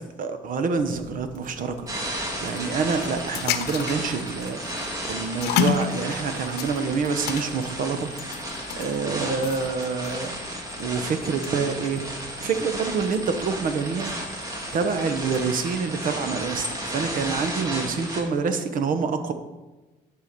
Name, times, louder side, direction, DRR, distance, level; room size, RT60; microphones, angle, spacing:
voice 1, 0.2-2.1 2.4-4.6 5.0-8.1 8.8-10.3 10.8-12.0 12.4-14.1 14.7-19.3, right 5 dB, 55° right, 8 dB, 1.0 m, -27 dB
sound 1, 0.7-15.6, left 8 dB, 75° left, 0.8 m, -34 dB
sound 2, 1.9-18.2, right 1 dB, 20° right, 1.9 m, -33 dB
11.5 x 4.9 x 5.3 m, 1.1 s
cardioid pair, 110°, 17 cm